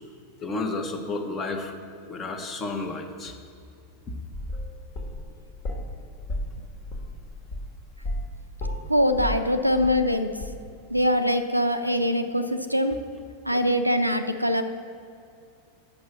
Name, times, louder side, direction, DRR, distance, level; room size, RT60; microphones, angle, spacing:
voice 1, 0.4-1.8 2.1-3.4 4.1-4.2 13.5-13.6, left 3 dB, 25° left, 5 dB, 0.9 m, -31 dB
sound 1, 4.3-5.9 6.3-8.3 8.6-10.1 10.4-10.5, left 1 dB, 45° left, 1.5 m, -33 dB
voice 2, 8.9-10.3 10.9-13.0 13.5-14.6, equal, 90° right, 7 dB, 0.5 m, -23 dB
6.5 x 6.1 x 7.3 m, 2.4 s
figure-of-eight pair, 90°, 0 cm